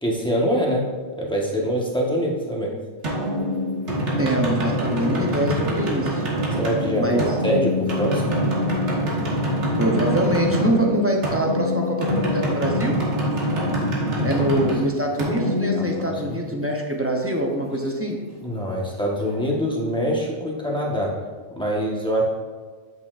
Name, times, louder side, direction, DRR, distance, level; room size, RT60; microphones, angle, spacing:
voice 1, 0.0-2.7 6.6-8.3 14.1-14.4 16.0-16.4 18.4-21.1 21.5-22.2, equal, 5° left, -3 dB, 1.1 m, -24 dB
Dhol outside, 3.0-16.6, equal, 90° right, 1.7 m, -24 dB
voice 2, 4.2-6.2 7.0-7.2 9.8-13.0 14.2-18.2, right 1 dB, 15° right, 0 dB, 0.6 m, -24 dB
8.3 x 6.7 x 2.5 m, 1.5 s
omnidirectional pair, 1.1 m